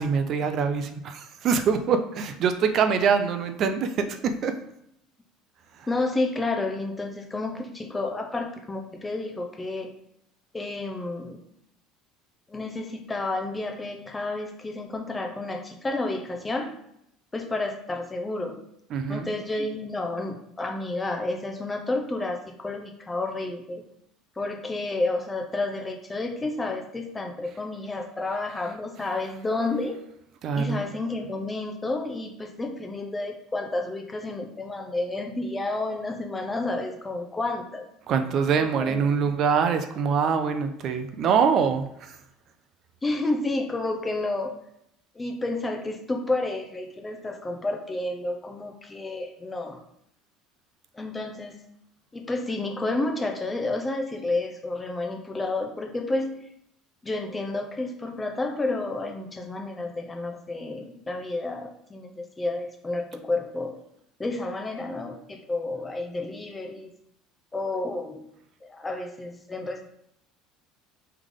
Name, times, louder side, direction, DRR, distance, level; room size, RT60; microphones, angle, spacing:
voice 1, 0.0-4.6 18.9-19.3 30.4-30.8 38.1-42.2, right 6 dB, 50° right, 7 dB, 0.5 m, -24 dB
voice 2, 5.9-9.9 10.5-11.4 12.5-16.8 17.3-18.6 19.1-23.8 24.4-30.0 30.6-37.9 38.6-39.0 43.0-44.6 45.1-49.8 50.9-51.6 52.1-56.5 57.0-63.8 64.2-66.9 67.5-68.3 68.6-69.8, left 2 dB, 15° left, 3 dB, 0.7 m, -30 dB
3.6 x 3.3 x 3.6 m, 0.74 s
supercardioid pair, 120°, 0 cm